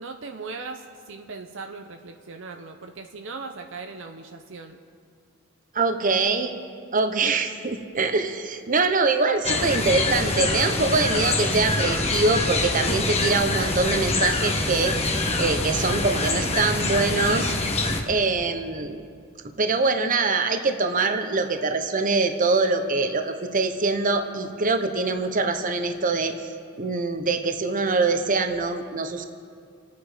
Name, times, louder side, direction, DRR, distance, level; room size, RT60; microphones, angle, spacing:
voice 1, 0.0-4.8, right 4 dB, 65° right, 5 dB, 0.7 m, -38 dB
voice 2, 5.7-6.5 6.9-15.0 15.4-19.0 19.6-26.4 26.8-29.2, right 3 dB, 40° right, 7 dB, 1.0 m, -24 dB
sound 1, 9.4-18.0, left 2 dB, 30° left, 1.2 m, -25 dB
27.5 x 9.3 x 5.0 m, 2.2 s
head